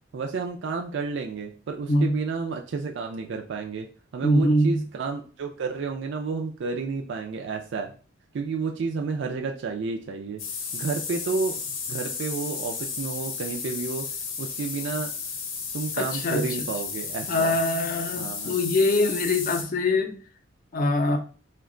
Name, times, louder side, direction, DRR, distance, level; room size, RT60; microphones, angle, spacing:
voice 1, 0.1-3.9 4.1-7.9 8.3-10.4 10.7-11.6 11.9-14.1 14.4-15.1 15.7-17.6 18.2-18.5, right 4 dB, 65° right, 0.4 m, -31 dB
voice 2, 4.2-4.8 16.0-16.4 17.3-20.2 20.7-21.2, left 1 dB, 45° left, 0.5 m, -23 dB
sound 1, 10.4-19.6, left 5 dB, 90° left, 0.7 m, -33 dB
3.0 x 2.2 x 3.7 m
head